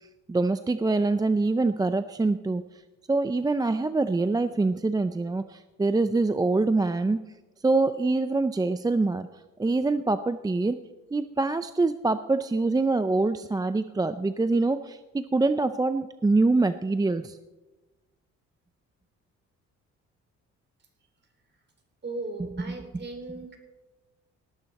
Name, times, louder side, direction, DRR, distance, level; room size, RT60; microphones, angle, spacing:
voice 1, 0.3-2.6 3.1-7.2 7.6-9.3 9.6-10.8 11.1-17.4, right 3 dB, 15° right, 11 dB, 0.5 m, -25 dB
voice 2, 22.0-23.6, right 2 dB, 35° right, 4 dB, 4.1 m, -37 dB
19.0 x 12.5 x 4.2 m, 1.1 s
cardioid pair, 90°, 30 cm